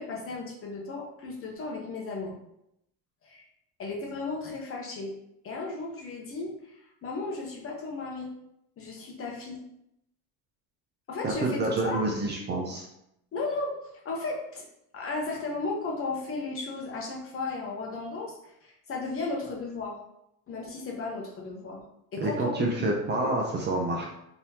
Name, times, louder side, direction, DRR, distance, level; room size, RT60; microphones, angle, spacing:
voice 1, 0.0-2.4 3.2-3.4 3.8-5.1 5.4-8.3 8.8-9.6 11.1-12.1 13.3-13.7 14.0-14.6 14.9-20.0 20.5-21.8 22.1-22.5 22.8-22.9 23.2-23.4, left 3 dB, 35° left, -1 dB, 0.8 m, -35 dB
voice 2, 11.2-12.9 22.2-24.1, right 2 dB, 25° right, 0 dB, 0.5 m, -28 dB
3.8 x 3.0 x 2.7 m, 0.80 s
cardioid pair, 125°, 40 cm